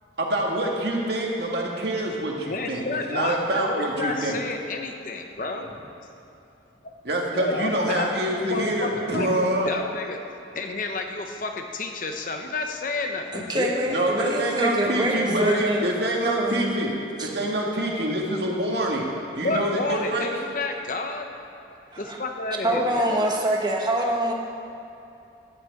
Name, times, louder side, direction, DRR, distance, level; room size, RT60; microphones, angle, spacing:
voice 1, 0.2-2.8 3.1-4.4 7.0-9.7 13.9-19.1 19.3-20.3, right 1 dB, 60° right, -1 dB, 1.9 m, -26 dB
voice 2, 2.4-5.7 6.8-6.9 7.3-10.3 10.5-13.9 19.3-21.3 22.0-23.3, left 3 dB, 45° left, 4 dB, 0.8 m, -30 dB
voice 3, 13.3-15.8 16.2-16.8 17.2-17.3 21.9-22.2 22.6-24.3, right 1 dB, 20° right, 0 dB, 1.3 m, -25 dB
13.0 x 6.2 x 8.5 m, 2.8 s
head